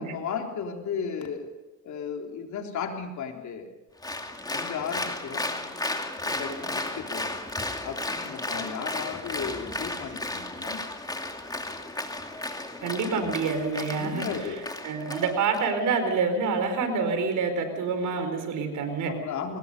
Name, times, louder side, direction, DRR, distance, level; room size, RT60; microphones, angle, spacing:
voice 1, 0.0-1.5 1.8-3.7 4.5-5.5 6.2-7.3 7.8-10.8 13.9-14.6 19.1-19.6, left 6 dB, 70° left, 3 dB, 3.7 m, -35 dB
Applause, 4.0-15.6, left 2 dB, 15° left, 2.6 m, -34 dB
voice 2, 12.8-14.2 14.8-19.1, right 4 dB, 85° right, 7 dB, 4.6 m, -27 dB
22.5 x 19.5 x 6.8 m, 1.1 s
cardioid pair, 90°, 30 cm